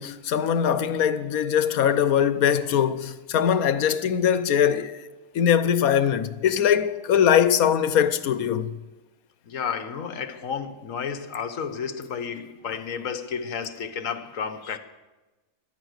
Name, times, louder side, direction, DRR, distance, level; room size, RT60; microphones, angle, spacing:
voice 1, 0.0-4.9 5.3-8.8, left 8 dB, 85° left, 1.3 m, -21 dB
voice 2, 9.4-14.8, left 6 dB, 70° left, 1.4 m, -32 dB
17.0 x 12.0 x 6.6 m
omnidirectional pair, 1.5 m